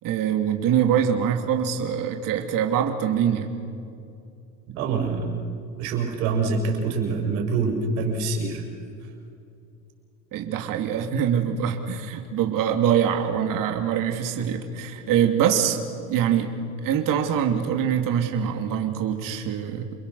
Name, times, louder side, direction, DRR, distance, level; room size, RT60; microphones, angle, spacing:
voice 1, 0.0-3.6 10.3-15.8 16.1-16.6 16.8-19.9, right 8 dB, 50° right, 4 dB, 2.6 m, -24 dB
voice 2, 4.8-5.3 5.8-8.6, right 4 dB, 75° right, 2 dB, 6.0 m, -25 dB
29.0 x 22.0 x 6.9 m, 2.5 s
supercardioid pair, 110°, 42 cm